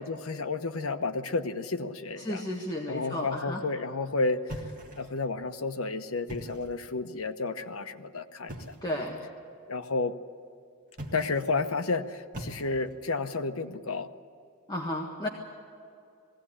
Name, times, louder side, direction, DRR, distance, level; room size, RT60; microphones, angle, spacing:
voice 1, 0.0-2.4 2.9-4.6 5.0-8.7 9.7-10.1 11.1-14.1, left 3 dB, 80° left, 9 dB, 1.0 m, -31 dB
voice 2, 2.2-3.6 8.8-9.2 14.7-15.3, left 1 dB, 20° left, -2 dB, 1.6 m, -33 dB
sound 1, 4.5-5.3 6.1-6.8 8.5-8.9 10.9-11.6 12.3-13.0, right 1 dB, 40° right, 1.9 m, -42 dB
20.0 x 17.0 x 9.9 m, 2.4 s
head